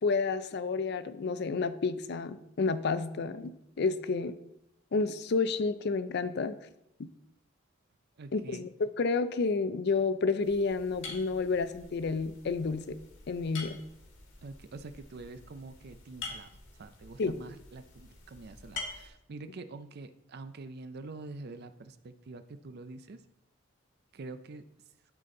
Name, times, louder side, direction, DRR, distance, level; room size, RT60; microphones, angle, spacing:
voice 1, 0.0-3.5 3.8-4.4 4.9-6.6 7.0-7.1 8.3-13.0 13.3-13.8 17.2-17.4, left 4 dB, 55° left, 12 dB, 0.5 m, -30 dB
voice 2, 8.2-8.7 14.4-23.2 24.1-24.6, right 3 dB, 55° right, 11 dB, 0.5 m, -46 dB
sound 1, 10.4-19.1, left 4 dB, 75° left, 1.5 m, -47 dB
12.0 x 4.1 x 3.8 m, 0.84 s
head